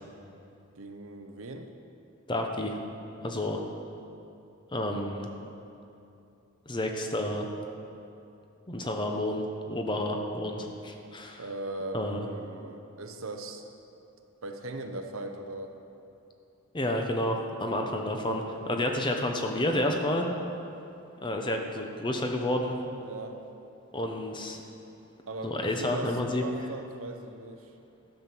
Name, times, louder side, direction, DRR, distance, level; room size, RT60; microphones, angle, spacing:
voice 1, 0.7-1.7 11.4-13.7 14.4-15.7 23.0-23.4 25.3-27.7, right 2 dB, 75° right, 5 dB, 0.9 m, -39 dB
voice 2, 2.3-2.8 3.2-3.6 4.7-5.3 6.7-7.5 8.7-11.4 11.9-12.3 16.7-20.3 21.2-22.8 23.9-24.6 25.4-26.5, left 1 dB, 20° left, 3 dB, 0.8 m, -30 dB
12.5 x 7.4 x 6.1 m, 2.7 s
head